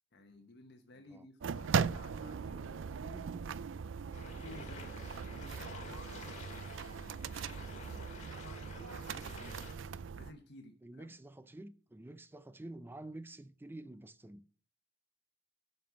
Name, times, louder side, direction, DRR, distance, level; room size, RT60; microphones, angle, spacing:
voice 1, 0.1-3.3 4.1-6.3 7.2-9.6 10.2-11.1, left 2 dB, 60° left, 1.1 m, -55 dB
sound 1, 1.4-10.3, right 6 dB, 75° right, 0.4 m, -39 dB
sound 2, 4.1-9.7, left 3 dB, 40° left, 2.2 m, -51 dB
voice 2, 9.4-9.8 10.8-14.5, right 1 dB, 10° right, 0.4 m, -49 dB
12.5 x 5.5 x 5.8 m
head